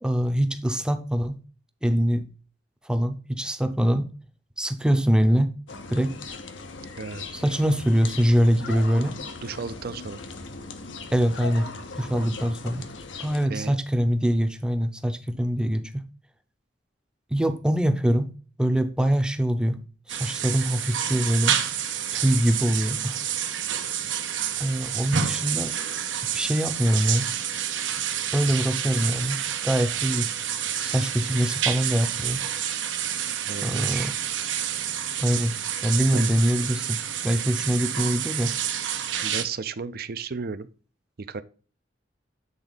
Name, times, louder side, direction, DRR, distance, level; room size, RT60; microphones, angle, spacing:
voice 1, 0.0-1.4 1.8-2.3 2.9-4.1 4.6-5.5 5.9-6.1 7.3-9.2 11.1-11.7 12.0-12.9 13.2-16.0 17.3-18.3 18.6-19.8 20.1-21.6 22.1-23.2 24.6-25.7 26.3-27.3 28.3-30.3 30.8-32.4 33.6-34.1 35.2-35.6 35.8-38.6, equal, 5° right, 0.6 m, -23 dB
sound 1, 5.7-13.5, left 3 dB, 80° left, 0.9 m, -39 dB
voice 2, 9.4-10.2 13.4-13.8 33.5-34.1 36.1-36.3 39.2-40.7 41.2-41.4, right 5 dB, 55° right, 0.5 m, -34 dB
sound 2, 20.1-39.4, right 9 dB, 80° right, 0.9 m, -29 dB
8.2 x 3.9 x 3.9 m
head